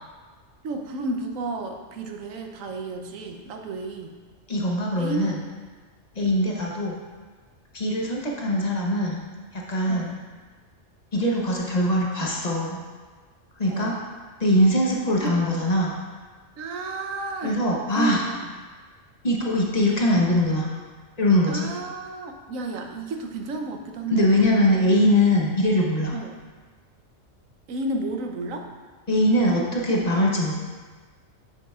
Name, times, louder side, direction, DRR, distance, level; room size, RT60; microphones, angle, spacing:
voice 1, 0.6-4.1 5.0-5.3 6.2-6.5 9.9-10.2 13.7-13.9 15.2-15.7 16.6-17.6 17.9-18.5 21.5-24.2 26.1-26.3 27.7-28.7, right 3 dB, 85° right, 4 dB, 1.1 m, -32 dB
voice 2, 4.5-5.4 6.1-7.0 7.7-9.2 9.5-10.1 11.1-12.8 13.6-14.0 14.4-16.0 17.4-18.2 19.2-20.7 21.2-21.7 24.1-26.2 29.1-30.5, left 1 dB, 35° left, -2 dB, 0.9 m, -22 dB
7.6 x 6.7 x 2.4 m, 1.4 s
omnidirectional pair, 1.3 m